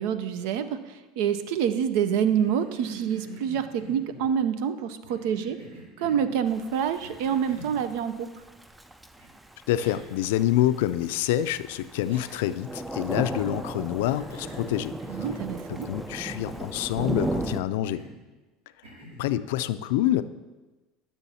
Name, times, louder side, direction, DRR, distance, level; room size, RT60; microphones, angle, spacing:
voice 1, 0.0-5.6 6.0-8.3 15.1-15.9, right 8 dB, 75° right, 11 dB, 0.5 m, -27 dB
Cough, 2.1-4.3 5.1-6.3 7.0-7.8 9.2-9.3 9.8-10.2 10.5-10.6 12.1-12.6 13.2-13.6 14.0-15.5 15.8-16.8 17.2-17.5 17.9-18.2 18.8-19.3, right 1 dB, 90° right, 2.5 m, -46 dB
Thunder / Rain, 6.5-17.6, right 1 dB, 10° right, 0.4 m, -35 dB
voice 2, 9.7-15.0 15.7-18.0 19.2-20.2, left 13 dB, 80° left, 13 dB, 0.3 m, -27 dB
11.5 x 6.9 x 2.8 m, 1.2 s
supercardioid pair, 110°, 0 cm